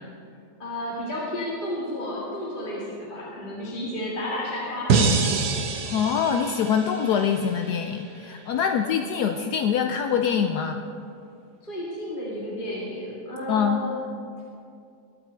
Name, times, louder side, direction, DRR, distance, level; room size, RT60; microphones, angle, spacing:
voice 1, 0.6-5.4 8.6-8.9 11.6-14.0, left 1 dB, 30° left, -6 dB, 2.2 m, -32 dB
sound 1, 4.9-8.0, right 4 dB, 65° right, 1.4 m, -25 dB
voice 2, 5.9-10.8 13.5-13.8, left 7 dB, 70° left, 6 dB, 1.1 m, -24 dB
21.0 x 9.0 x 4.5 m, 2.5 s
omnidirectional pair, 1.9 m